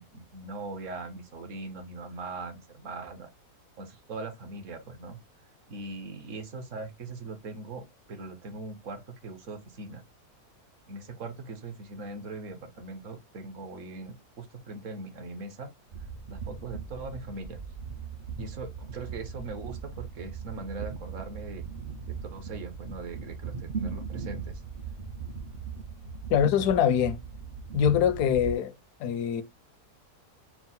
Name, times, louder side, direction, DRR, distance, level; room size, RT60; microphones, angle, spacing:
voice 1, 0.0-3.3 3.8-5.2 5.7-10.0 10.9-15.7 16.3-17.6 18.4-21.6 22.3-24.6 26.3-26.4, right 3 dB, 60° right, 1.1 m, -40 dB
sound 1, 15.9-28.5, right 6 dB, 75° right, 0.4 m, -39 dB
voice 2, 26.3-27.2 27.7-28.7 29.0-29.4, left 8 dB, 85° left, 1.1 m, -23 dB
4.5 x 2.0 x 4.0 m
omnidirectional pair, 1.6 m